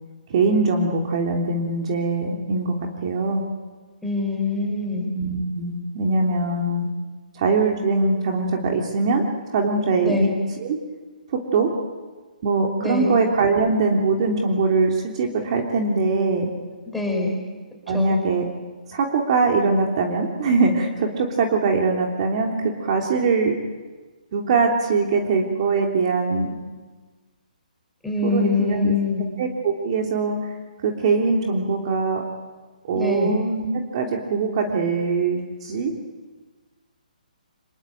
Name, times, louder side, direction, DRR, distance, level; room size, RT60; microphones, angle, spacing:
voice 1, 0.3-3.4 5.1-6.9 7.3-9.2 9.5-10.3 10.6-10.8 11.3-11.7 12.4-16.5 17.9-18.5 18.9-23.5 24.3-26.5 28.2-28.9 29.4-30.6 30.8-32.2 32.8-35.9, right 4 dB, 40° right, 1 dB, 3.1 m, -22 dB
voice 2, 4.0-5.1 10.0-10.3 12.8-13.1 16.9-17.4 17.9-18.2 28.0-29.3 32.9-33.3, left 3 dB, ahead, -1 dB, 4.9 m, -24 dB
26.0 x 22.0 x 9.2 m, 1.4 s
hypercardioid pair, 155°, 5 cm